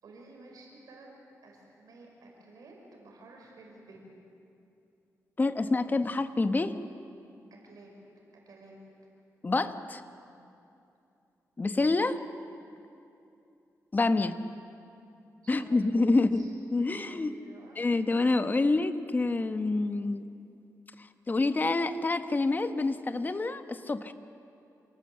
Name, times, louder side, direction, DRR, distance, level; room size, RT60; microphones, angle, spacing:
voice 1, 0.0-1.1 1.4-4.0 7.5-7.9 8.3-8.8 15.4-17.8, right 2 dB, 80° right, 0 dB, 5.5 m, -53 dB
voice 2, 5.4-6.8 9.4-10.0 11.6-12.2 13.9-14.3 15.5-16.4 16.7-17.3 17.8-20.2 21.3-24.1, left 3 dB, 30° left, 10 dB, 1.1 m, -27 dB
27.5 x 18.5 x 7.8 m, 2.7 s
cardioid pair, 90°, 6 cm